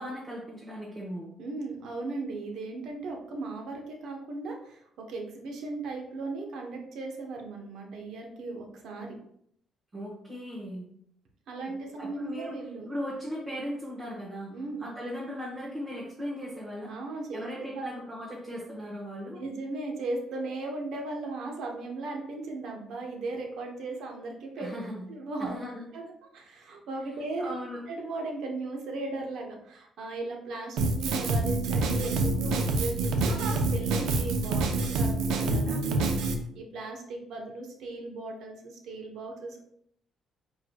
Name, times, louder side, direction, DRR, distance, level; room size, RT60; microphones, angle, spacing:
voice 1, 0.0-1.3 9.9-10.8 11.7-12.5 12.8-16.9 17.3-19.4 24.6-25.0 25.4-25.8 27.4-27.8, equal, 30° right, -5 dB, 1.2 m, -38 dB
voice 2, 1.4-9.2 11.5-12.9 14.5-14.8 16.8-17.5 17.7-17.9 19.4-24.7 25.1-25.6 25.9-26.0 26.3-27.5 27.9-36.1 36.5-39.6, right 3 dB, 70° right, 2 dB, 1.0 m, -37 dB
Drum kit, 30.8-36.3, right 3 dB, 85° right, 0.6 m, -27 dB
4.8 x 4.7 x 2.3 m, 0.70 s
cardioid pair, 145°, 0 cm